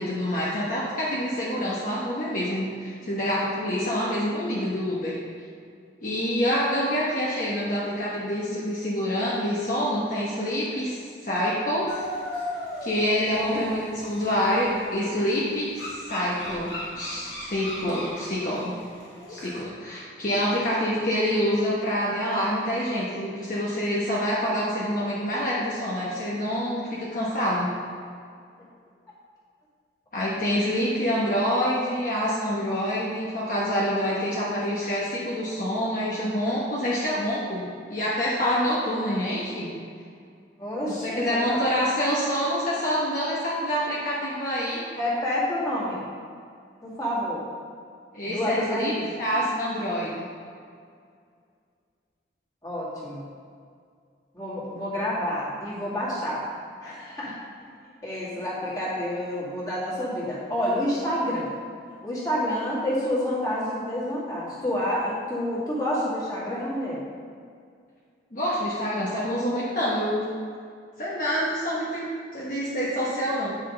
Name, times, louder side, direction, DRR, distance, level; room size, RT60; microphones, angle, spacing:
voice 1, 0.0-5.1 6.0-11.0 11.2-11.8 12.8-18.7 19.3-27.7 30.1-39.7 40.9-44.8 48.1-48.9 49.2-50.1 68.3-70.2 71.0-73.6, equal, 45° left, -7 dB, 1.1 m, -26 dB
sound 1, 11.9-19.6, left 1 dB, 70° left, 1.8 m, -38 dB
voice 2, 40.6-41.6 44.9-46.0 46.8-47.4 48.2-49.2 52.6-53.2 54.3-56.4 56.8-57.3 58.0-61.5 62.0-67.0, left 1 dB, 20° left, -8 dB, 2.1 m, -28 dB
8.9 x 6.3 x 3.9 m, 2.2 s
head